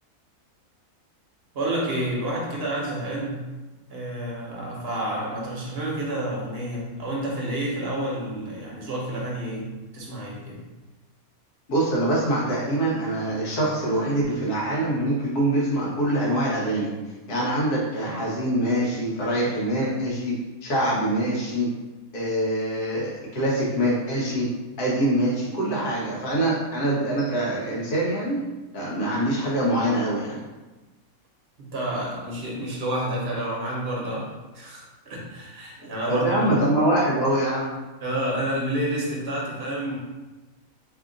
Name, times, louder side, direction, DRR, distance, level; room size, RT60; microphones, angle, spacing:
voice 1, 1.5-3.5 3.9-10.6 31.6-36.6 38.0-39.9, right 1 dB, 45° right, -3 dB, 1.1 m, -29 dB
voice 2, 11.7-16.9 17.3-21.7 22.1-24.5 24.8-28.4 28.7-30.4 36.1-37.8, right 1 dB, 80° left, -6 dB, 1.6 m, -24 dB
3.4 x 2.4 x 3.8 m, 1.2 s
omnidirectional pair, 1.6 m